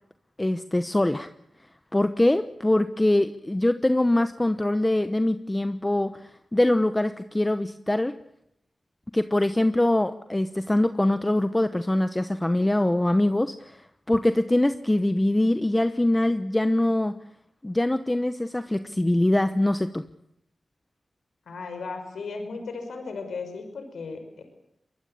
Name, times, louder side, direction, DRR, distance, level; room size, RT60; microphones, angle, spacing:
voice 1, 0.4-1.3 1.9-8.2 9.1-17.2 17.6-20.0, left 1 dB, 15° left, 10 dB, 1.0 m, -23 dB
voice 2, 21.5-24.4, left 4 dB, 90° left, 6 dB, 5.2 m, -36 dB
23.5 x 21.0 x 8.7 m, 0.76 s
cardioid pair, 70°, 0 cm